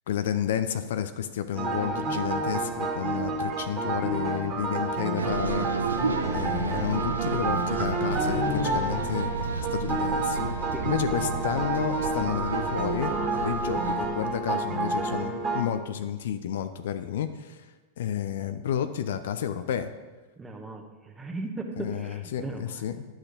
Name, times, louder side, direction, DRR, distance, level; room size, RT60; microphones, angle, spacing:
voice 1, 0.1-5.7 6.3-9.3 9.7-10.5 10.8-13.1 13.4-17.7 18.0-19.9 21.8-23.1, left 9 dB, 60° left, 11 dB, 0.5 m, -31 dB
sound 1, 1.5-15.6, right 3 dB, 30° right, 2.0 m, -29 dB
sound 2, 5.2-14.1, right 4 dB, 75° right, 0.7 m, -32 dB
voice 2, 20.4-22.8, right 2 dB, 15° right, 3 dB, 1.3 m, -37 dB
11.5 x 6.4 x 5.1 m, 1.3 s
figure-of-eight pair, 90°, 0 cm